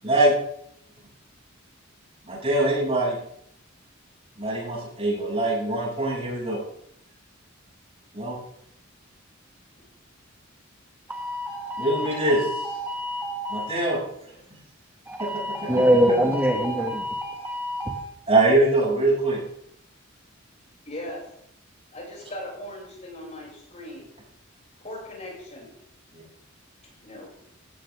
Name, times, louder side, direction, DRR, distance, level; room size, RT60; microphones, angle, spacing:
voice 1, 0.0-0.3 2.2-3.2 4.4-6.6 8.1-8.4 11.8-12.5 13.5-14.0 15.2-15.3 18.3-19.4 26.1-26.2, right 2 dB, 30° right, -4 dB, 7.7 m, -22 dB
voice 2, 11.1-13.7 15.1-18.1, equal, 10° right, 1 dB, 1.9 m, -25 dB
voice 3, 20.9-21.2 21.9-24.1 24.8-25.7 27.0-27.3, left 1 dB, 35° left, -2 dB, 7.1 m, -38 dB
18.0 x 17.5 x 3.8 m, 0.72 s
head